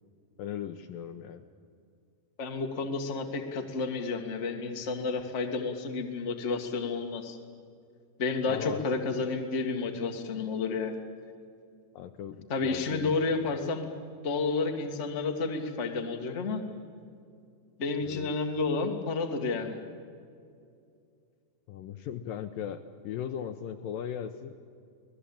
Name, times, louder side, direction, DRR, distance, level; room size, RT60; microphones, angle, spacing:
voice 1, 0.4-1.4 8.5-8.8 11.9-12.4 12.6-13.1 18.0-18.3 21.7-22.8 23.0-24.5, left 9 dB, 75° left, 8 dB, 2.2 m, -37 dB
voice 2, 2.4-7.4 8.2-11.0 12.5-13.9 14.2-16.6 17.8-19.8, left 4 dB, 30° left, 3 dB, 1.3 m, -31 dB
26.0 x 19.0 x 8.7 m, 2.4 s
omnidirectional pair, 4.6 m